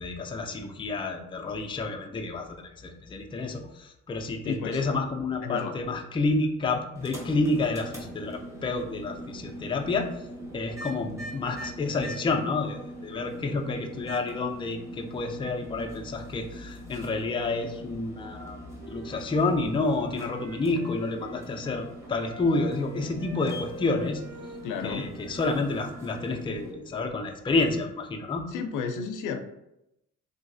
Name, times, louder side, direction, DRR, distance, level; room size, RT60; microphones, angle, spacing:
voice 1, 0.0-10.3 10.5-18.6 18.9-24.2 24.8-28.5, left 3 dB, 15° left, 3 dB, 0.4 m, -29 dB
voice 2, 4.5-4.8 5.4-5.8 24.6-25.1 28.5-29.4, left 6 dB, 85° left, 6 dB, 0.5 m, -32 dB
sound 1, 6.9-26.7, equal, 10° right, 0.8 m, -42 dB
Wind instrument woodwind instrument, 18.3-26.3, equal, 80° right, 1.1 m, -47 dB
3.1 x 2.7 x 2.6 m, 0.85 s
cardioid pair, 90°, 30 cm